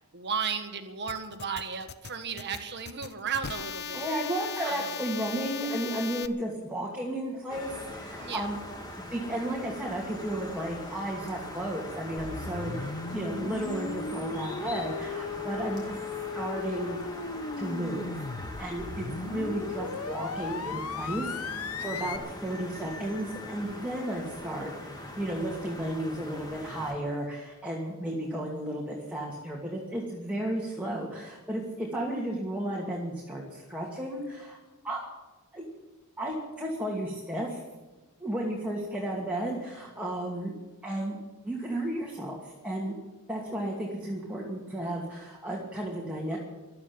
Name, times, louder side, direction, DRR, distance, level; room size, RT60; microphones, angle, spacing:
voice 1, 0.1-4.1 4.6-4.9 8.2-8.5 21.8-22.1, right 6 dB, 50° right, 7 dB, 1.6 m, -35 dB
sound 1, 1.1-6.3, left 7 dB, 50° left, 0.7 m, -38 dB
voice 2, 3.9-8.6 9.0-15.9 16.3-17.0 17.6-18.2 18.6-34.6 34.8-35.0 35.5-35.6 36.2-37.6 38.2-40.5 40.8-41.2 41.4-43.0 43.3-46.4, right 1 dB, 5° right, -4 dB, 2.5 m, -33 dB
sound 2, 7.5-26.9, left 1 dB, 20° left, 2.2 m, -42 dB
sound 3, 12.2-22.2, left 5 dB, 75° left, 0.8 m, -37 dB
16.0 x 12.5 x 7.1 m, 1.1 s
head